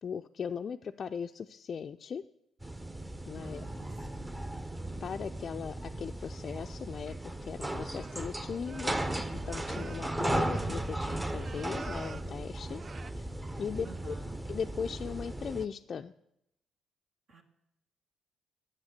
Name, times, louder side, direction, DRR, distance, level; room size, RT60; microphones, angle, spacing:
voice 1, 0.0-2.2 3.3-3.7 5.0-12.8 13.2-13.3 13.6-14.1 14.5-16.1, left 6 dB, 50° left, 6 dB, 0.4 m, -38 dB
sound 1, 2.6-15.6, right 1 dB, 15° right, 0.9 m, -36 dB
voice 2, 3.4-4.4 13.8-14.4 17.3-17.4, right 3 dB, 60° right, 1 dB, 1.5 m, -53 dB
sound 2, 8.0-12.3 12.7-13.1, right 4 dB, 40° right, 0.4 m, -49 dB
9.7 x 7.3 x 8.1 m, 0.82 s
hypercardioid pair, 50°, 0 cm